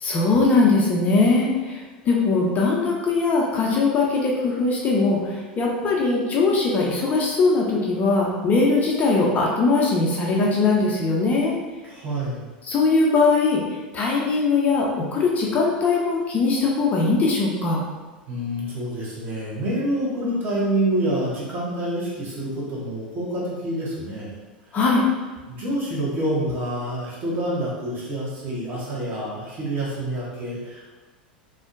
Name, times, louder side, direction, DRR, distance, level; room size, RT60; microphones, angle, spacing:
voice 1, 0.0-11.6 12.7-13.6 13.9-17.8 24.7-25.1, left 3 dB, 30° left, -3 dB, 0.5 m, -20 dB
voice 2, 11.8-12.5 18.3-24.3 25.5-30.9, right 1 dB, 35° right, -5 dB, 0.9 m, -27 dB
2.5 x 2.1 x 2.5 m, 1.2 s
figure-of-eight pair, 80°, 5 cm